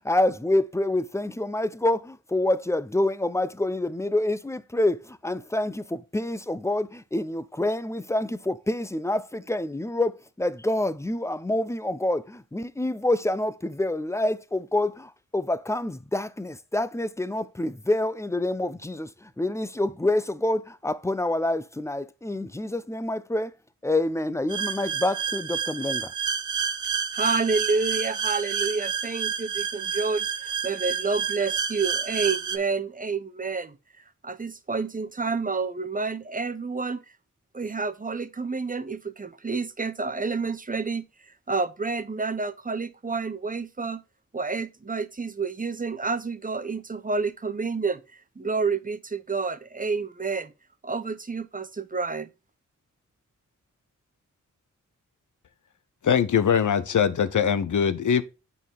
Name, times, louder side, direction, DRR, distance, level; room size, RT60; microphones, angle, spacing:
voice 1, 0.0-23.5 23.8-26.1, left 1 dB, 10° left, 0.6 m, -27 dB
sound 1, 24.5-32.6, right 7 dB, 65° right, 0.9 m, -29 dB
voice 2, 27.1-33.8 34.2-37.0 37.5-41.1 41.5-44.0 44.3-48.0 48.4-50.5 50.8-52.3, right 4 dB, 25° right, 0.8 m, -29 dB
voice 3, 56.0-58.2, left 7 dB, 65° left, 0.8 m, -22 dB
8.9 x 4.1 x 3.5 m
cardioid pair, 55°, 32 cm